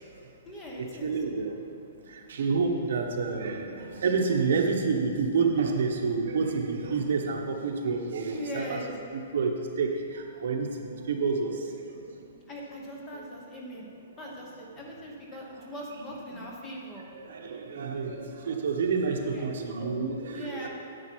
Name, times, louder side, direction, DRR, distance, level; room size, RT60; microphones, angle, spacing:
voice 1, 0.4-1.2 8.3-9.0 12.5-13.9 14.2-17.1 19.2-19.5 20.3-20.7, equal, 15° left, -2 dB, 1.0 m, -40 dB
voice 2, 1.0-8.8 9.1-12.2 13.1-13.2 13.7-13.8 16.0-16.4 17.1-20.7, right 4 dB, 60° right, 2 dB, 1.1 m, -29 dB
9.6 x 8.6 x 4.6 m, 2.4 s
hypercardioid pair, 175°, 0 cm